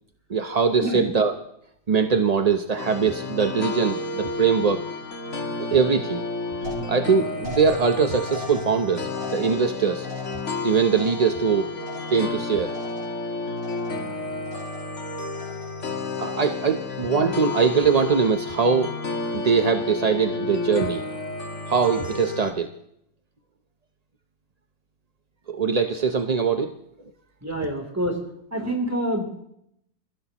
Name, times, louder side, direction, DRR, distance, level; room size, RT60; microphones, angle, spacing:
voice 1, 0.3-1.3 1.9-4.8 5.6-6.2 6.9-10.1 10.6-11.7 12.1-12.7 16.2-18.9 19.3-21.0 21.7-22.7 25.5-26.7, right 5 dB, 40° right, 6 dB, 0.5 m, -22 dB
sound 1, 2.8-22.5, left 3 dB, 45° left, 2.0 m, -31 dB
sound 2, 6.6-12.4 12.7-13.3 13.6-14.1 14.4-15.0 15.3-15.9, equal, 85° right, 6.4 m, -41 dB
voice 2, 27.4-28.2 28.5-29.4, right 1 dB, 10° right, 1 dB, 3.3 m, -27 dB
27.0 x 15.5 x 3.0 m, 0.76 s
omnidirectional pair, 1.8 m